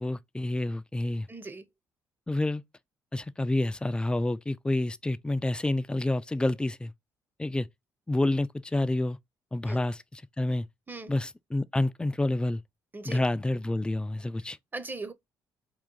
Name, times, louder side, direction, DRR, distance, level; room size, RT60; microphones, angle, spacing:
voice 1, 0.0-1.3 2.3-2.6 3.1-6.9 7.4-7.7 8.1-9.2 9.5-10.7 11.1-12.6 13.0-14.6, left 2 dB, 10° left, 0.3 m, -28 dB
voice 2, 1.3-1.6 9.7-9.8 10.9-11.1 12.9-13.2 14.7-15.1, right 3 dB, 20° right, 0.7 m, -39 dB
3.7 x 2.4 x 3.8 m
hypercardioid pair, 50°, 9 cm